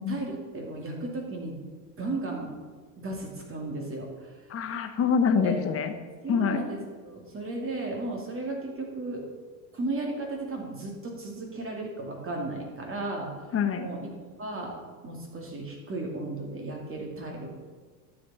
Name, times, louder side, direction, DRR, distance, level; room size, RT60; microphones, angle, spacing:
voice 1, 0.0-1.6 2.0-2.5 3.0-4.3 5.3-5.6 6.2-9.3 9.7-13.3 13.8-14.1 14.4-14.8 15.0-17.5, right 2 dB, 25° right, 0 dB, 2.6 m, -35 dB
voice 2, 4.5-5.9 6.3-6.7 13.5-13.9, left 6 dB, 30° left, 7 dB, 1.0 m, -25 dB
11.5 x 8.0 x 4.3 m, 1.5 s
supercardioid pair, 110°, 49 cm